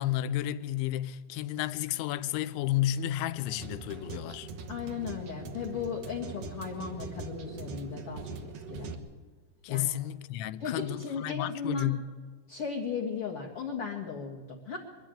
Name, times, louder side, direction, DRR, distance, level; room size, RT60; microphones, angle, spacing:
voice 1, 0.0-4.5 9.6-12.0, left 13 dB, 85° left, 3.1 m, -32 dB
sound 1, 2.8-8.9, right 3 dB, 80° right, 1.4 m, -42 dB
voice 2, 4.7-8.4 8.7-8.9 9.7-9.9 10.6-12.0 12.5-14.8, left 5 dB, 60° left, 1.5 m, -36 dB
22.5 x 13.5 x 9.0 m
omnidirectional pair, 5.2 m